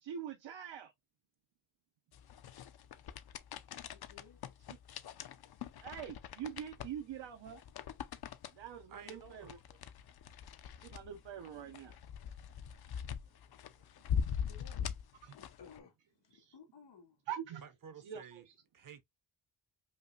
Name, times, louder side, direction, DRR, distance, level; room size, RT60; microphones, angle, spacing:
voice 1, 0.0-0.9 5.8-7.6 8.6-9.6 10.8-12.0 16.3-16.5 17.3-17.6 18.0-18.2, right 9 dB, 85° right, 0.7 m, -44 dB
sound 1, 2.1-15.8, left 7 dB, 60° left, 0.5 m, -42 dB
voice 2, 3.9-4.4 12.9-13.2 14.1-17.2, left 6 dB, 75° left, 2.3 m, -59 dB
voice 3, 8.9-9.6 13.3-13.4 13.6-13.9 17.6-18.5 18.7-19.0, right 7 dB, 50° right, 0.7 m, -53 dB
5.3 x 2.4 x 2.4 m
wide cardioid pair, 150°, 43 cm